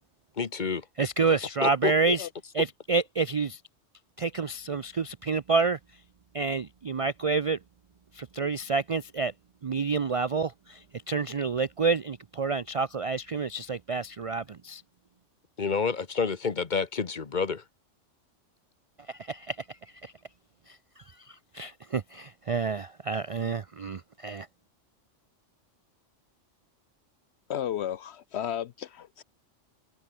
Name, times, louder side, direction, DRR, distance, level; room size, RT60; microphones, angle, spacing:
voice 1, 0.4-0.8 1.6-2.1 15.6-17.6, left 5 dB, 40° left, 1.2 m, -29 dB
voice 2, 1.0-2.3 2.5-3.6 4.2-5.8 6.3-7.6 8.1-9.3 9.6-14.8 19.1-20.1 20.7-20.8 21.1-24.5, right 4 dB, 55° right, 0.3 m, -29 dB
voice 3, 27.5-29.2, left 10 dB, 65° left, 0.8 m, -33 dB
open air
omnidirectional pair, 1.3 m